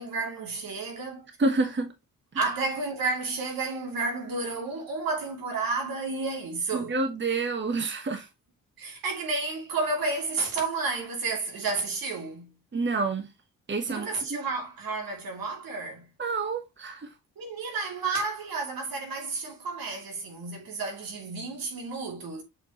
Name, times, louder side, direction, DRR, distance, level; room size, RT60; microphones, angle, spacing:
voice 1, 0.0-1.3 2.3-6.9 8.8-12.5 13.9-16.1 17.4-22.4, right 3 dB, 85° right, 2.8 m, -31 dB
voice 2, 1.4-1.9 6.7-8.2 12.7-13.3 13.7-14.4 16.2-17.1, right 3 dB, 35° right, 1.2 m, -28 dB
7.5 x 4.5 x 2.9 m
wide cardioid pair, 110°, 34 cm